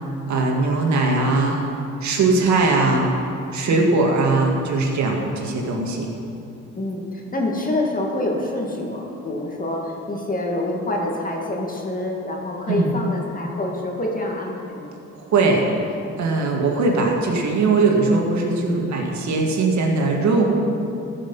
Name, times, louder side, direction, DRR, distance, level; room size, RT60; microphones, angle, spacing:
voice 1, 0.3-1.6 2.0-3.1 3.5-6.1 12.7-12.9 15.3-15.6 16.2-20.4, right 3 dB, 70° right, 0 dB, 1.9 m, -20 dB
voice 2, 6.7-15.0, left 1 dB, 30° left, -1 dB, 1.9 m, -26 dB
14.0 x 6.2 x 5.6 m, 2.8 s
cardioid pair, 90°, 30 cm